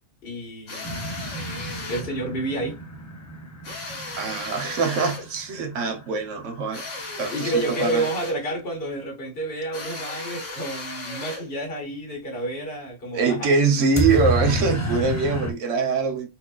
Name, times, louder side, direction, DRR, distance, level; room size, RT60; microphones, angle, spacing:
voice 1, 0.2-0.9 1.9-2.8 7.3-13.5, right 1 dB, 50° left, 1.6 m, -29 dB
sound 1, 0.7-2.1 3.6-5.3 6.7-8.5 9.7-11.5, left 2 dB, 80° left, 1.6 m, -36 dB
sound 2, 0.8-6.6 13.9-15.5, equal, 20° left, 0.5 m, -30 dB
voice 2, 4.2-6.8 7.2-8.1 13.1-16.3, right 4 dB, 80° right, 1.2 m, -23 dB
4.3 x 2.8 x 2.3 m
omnidirectional pair, 1.3 m